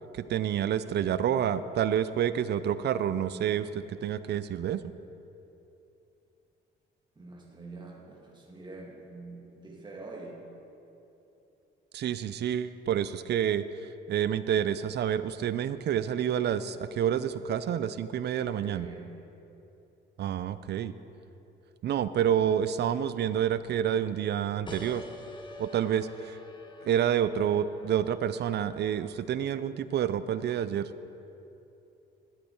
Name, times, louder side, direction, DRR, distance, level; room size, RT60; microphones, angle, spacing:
voice 1, 0.1-4.8 11.9-13.6 14.1-18.9 20.2-20.9 21.8-25.0 25.6-26.4 26.8-30.9, right 9 dB, 60° right, 14 dB, 0.5 m, -28 dB
voice 2, 7.2-10.4 18.1-19.1, right 3 dB, 20° right, -3 dB, 1.9 m, -45 dB
sound 1, 24.7-29.9, left 2 dB, 25° left, 0.9 m, -48 dB
11.5 x 8.5 x 4.5 m, 2.9 s
cardioid pair, 90°, 20 cm